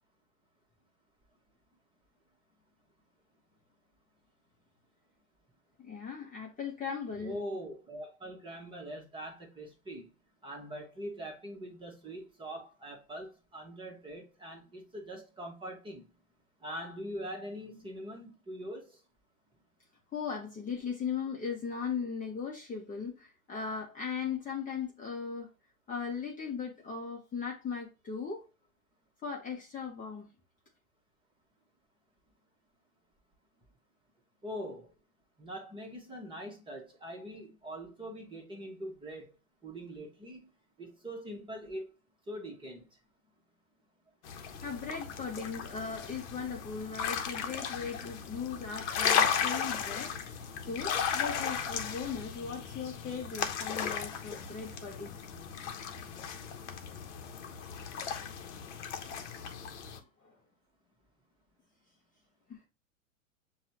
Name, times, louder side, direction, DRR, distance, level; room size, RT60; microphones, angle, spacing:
voice 1, 5.8-7.4 20.1-25.5 25.9-28.5 29.2-30.3 44.4-50.4 50.7-55.1 59.9-60.3 62.5-62.6, left 6 dB, 20° left, 0.9 m, -38 dB
voice 2, 7.2-10.1 10.4-16.1 16.6-19.0 34.4-34.9 35.4-39.3 39.6-40.5 40.8-42.0 42.3-42.9, equal, 10° right, 1.1 m, -43 dB
sound 1, 44.2-60.0, left 7 dB, 60° left, 0.9 m, -35 dB
7.1 x 2.4 x 2.8 m
hypercardioid pair, 105°, 40 cm